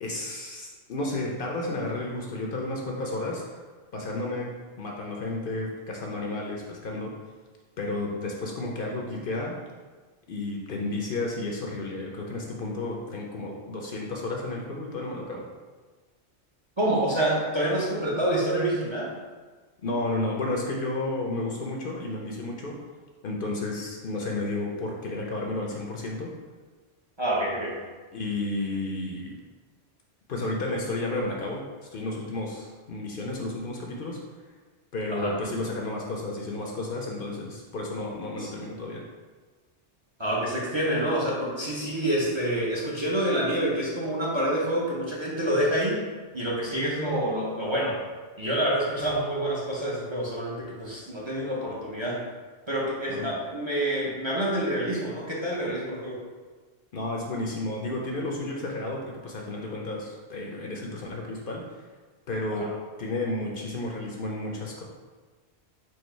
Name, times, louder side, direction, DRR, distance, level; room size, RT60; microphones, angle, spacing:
voice 1, 0.0-3.6 3.9-7.1 7.8-9.6 10.3-15.5 19.8-22.8 23.2-26.3 28.1-29.4 30.3-34.2 34.9-39.0 53.1-53.4 56.9-61.7 62.3-62.7 63.0-64.8, left 2 dB, 60° left, 0 dB, 0.7 m, -32 dB
voice 2, 16.8-19.1 27.2-27.8 35.1-35.4 38.4-38.5 40.2-46.0 46.3-48.0 48.4-52.3 52.7-56.2 62.6-62.7, right 1 dB, 30° right, -5 dB, 0.7 m, -27 dB
4.6 x 2.6 x 4.4 m, 1.4 s
omnidirectional pair, 1.2 m